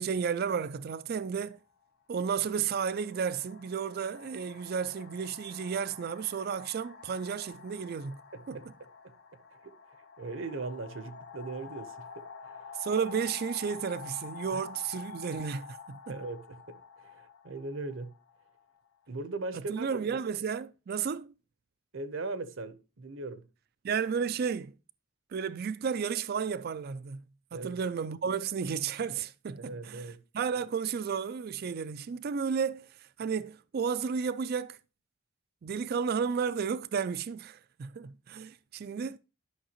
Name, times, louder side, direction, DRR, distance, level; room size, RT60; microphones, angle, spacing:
voice 1, 0.0-1.6 2.1-8.2 8.5-8.6 12.8-16.2 19.7-21.3 23.8-24.7 25.3-27.2 27.5-30.1 30.3-32.9 33.2-34.8 35.6-39.2, right 6 dB, 50° right, 0.4 m, -32 dB
sound 1, 1.3-1.4 2.4-19.0, left 6 dB, 55° left, 0.9 m, -48 dB
voice 2, 8.3-8.7 10.2-12.6 14.5-14.6 16.1-18.1 19.1-20.2 21.9-23.4 27.5-27.8 29.6-30.2, right 3 dB, 70° right, 0.8 m, -39 dB
11.5 x 5.7 x 2.9 m
head